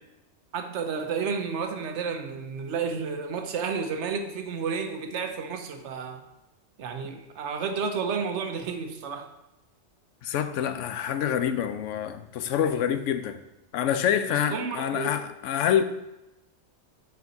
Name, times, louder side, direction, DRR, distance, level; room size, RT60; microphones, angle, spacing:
voice 1, 0.5-6.2 6.8-9.3 14.3-15.3, right 5 dB, 75° right, 7 dB, 1.0 m, -31 dB
voice 2, 10.2-13.4 13.7-15.8, left 9 dB, 85° left, 9 dB, 0.9 m, -26 dB
6.8 x 4.3 x 4.0 m, 0.94 s
omnidirectional pair, 1.2 m